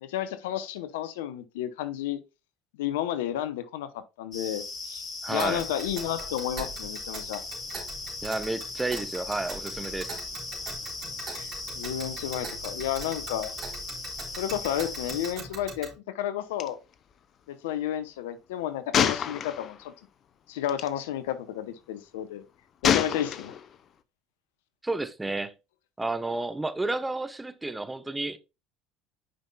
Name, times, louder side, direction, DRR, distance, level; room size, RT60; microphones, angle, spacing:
voice 1, 0.0-2.2 2.8-3.9 4.2-7.4 11.3-11.5 11.7-13.5 14.4-15.9 16.1-16.8 17.5-19.9 20.5-22.4 22.8-23.5, left 11 dB, 80° left, 0.8 m, -32 dB
sound 1, 4.3-15.3, left 3 dB, 30° left, 4.2 m, -38 dB
voice 2, 5.2-5.6 8.2-10.1 24.8-25.5 26.0-28.4, right 2 dB, 10° right, 0.9 m, -31 dB
Tick, 5.4-15.9, right 4 dB, 50° right, 3.3 m, -42 dB
Gunshot gunfire, 16.6-16.7 16.9-17.1 18.9-19.9 20.7-20.9 22.8-23.8, left 8 dB, 50° left, 0.7 m, -26 dB
8.8 x 5.5 x 2.3 m
hypercardioid pair, 75°, 0 cm